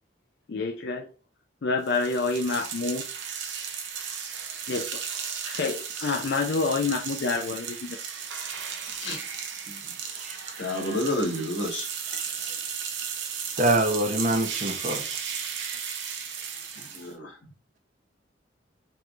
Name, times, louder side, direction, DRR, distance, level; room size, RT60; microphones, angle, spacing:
voice 1, 0.5-1.1 1.6-3.0 4.7-5.0 5.4-8.0, left 4 dB, 60° left, 0.4 m, -28 dB
sound 1, 1.9-17.1, right 7 dB, 75° right, 0.7 m, -35 dB
voice 2, 10.6-11.9 16.8-17.3, left 1 dB, 80° left, 1.4 m, -29 dB
voice 3, 13.6-15.0, right 1 dB, 40° right, 0.8 m, -25 dB
4.5 x 3.4 x 2.5 m
head